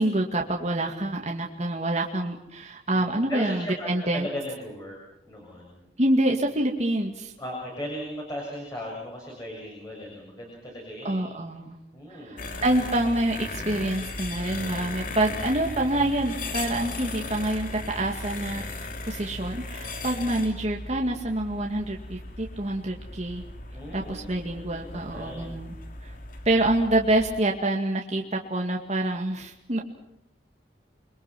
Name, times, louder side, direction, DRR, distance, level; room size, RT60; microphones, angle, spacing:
voice 1, 0.0-4.3 6.0-7.3 11.0-11.8 12.2-18.6 19.0-23.4 23.9-25.7 26.5-29.8, right 1 dB, 40° right, 1 dB, 2.1 m, -26 dB
voice 2, 2.9-5.0 5.3-5.8 7.4-11.3 11.9-12.5 23.7-25.6, equal, 20° left, -2 dB, 7.1 m, -37 dB
sound 1, 12.4-27.4, left 2 dB, 50° left, 2.7 m, -37 dB
29.5 x 23.0 x 6.1 m, 0.82 s
head